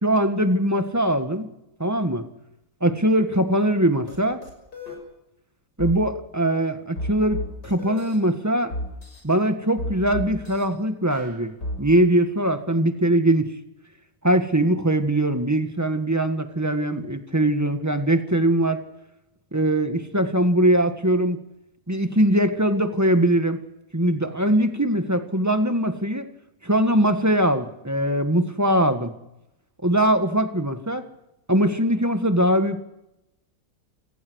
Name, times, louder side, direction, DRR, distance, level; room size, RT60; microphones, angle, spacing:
voice 1, 0.0-1.5 1.8-2.2 2.8-4.4 5.8-8.7 9.2-11.5 11.8-13.5 14.2-18.8 19.5-21.4 21.9-23.6 23.9-26.3 26.6-29.1 29.8-31.0 31.5-32.8, right 1 dB, 10° right, 8 dB, 1.6 m, -21 dB
sound 1, 4.1-4.2 4.4-5.0 5.8-6.0 7.0-8.2 8.7-9.2 9.8-10.6 11.1-11.8, equal, 85° left, 6.6 m, -32 dB
28.5 x 17.5 x 6.4 m, 0.89 s
omnidirectional pair, 1.7 m